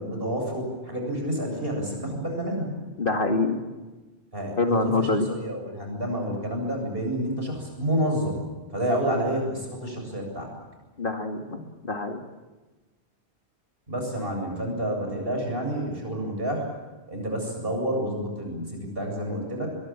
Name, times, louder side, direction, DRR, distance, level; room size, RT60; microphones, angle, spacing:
voice 1, 0.0-2.7 4.3-8.4 8.7-10.5 13.9-16.7 17.1-19.7, right 1 dB, 55° right, 2 dB, 8.1 m, -29 dB
voice 2, 3.0-3.6 4.6-5.3 11.0-12.2, left 3 dB, 55° left, 4 dB, 2.4 m, -25 dB
23.0 x 22.5 x 8.9 m, 1.2 s
omnidirectional pair, 1.1 m